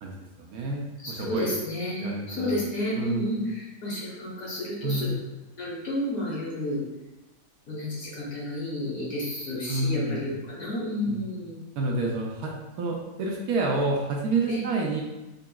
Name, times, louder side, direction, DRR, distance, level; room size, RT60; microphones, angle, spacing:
voice 1, 0.0-1.5 2.0-2.6 3.0-3.2 4.8-5.1 9.7-10.3 11.1-11.2 11.8-15.0, right 2 dB, 70° right, -1 dB, 1.0 m, -29 dB
voice 2, 1.0-5.1 5.6-6.8 7.7-11.6 14.5-14.6, left 1 dB, 60° left, -6 dB, 1.7 m, -31 dB
3.8 x 3.5 x 2.3 m, 1.0 s
omnidirectional pair, 1.7 m